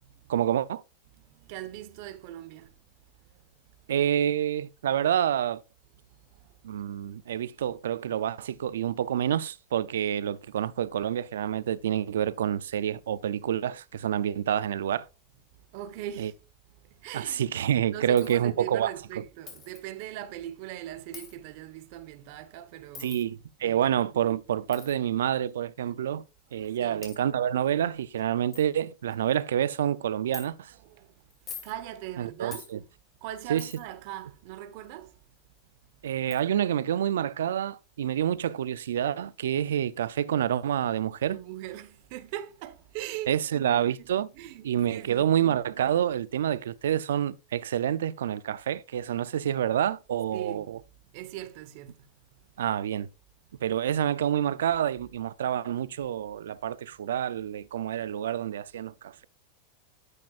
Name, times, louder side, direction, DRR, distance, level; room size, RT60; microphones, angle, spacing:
voice 1, 0.3-0.8 3.9-5.6 6.6-15.1 16.2-16.3 17.1-19.2 23.0-26.2 26.5-30.7 32.2-32.8 33.5-33.7 36.0-41.4 43.3-44.3 44.6-50.8 52.6-53.1 53.6-59.2, right 10 dB, 90° right, 0.4 m, -28 dB
voice 2, 1.1-2.8 3.3-3.4 6.2-6.6 15.5-16.4 16.7-17.5 17.9-23.2 23.6-23.9 26.6-27.1 30.7-31.1 31.6-32.6 33.2-35.2 41.3-44.1 44.3-45.5 50.3-50.7 51.1-52.4, right 13 dB, 60° right, 1.1 m, -41 dB
Coin (dropping), 18.2-18.4 19.5-19.8 21.1-21.4 22.9-23.2 24.7-24.9 25.9-26.0 26.7-26.8 27.0-27.2 27.8-27.9 28.2-28.3 28.5-28.7 29.1-29.4 30.3-30.5 31.3-31.8 32.5-32.7 33.6-33.9 35.6-35.7 36.3-36.4, left 7 dB, 30° left, 2.8 m, -44 dB
9.7 x 8.6 x 2.4 m
supercardioid pair, 125°, 0 cm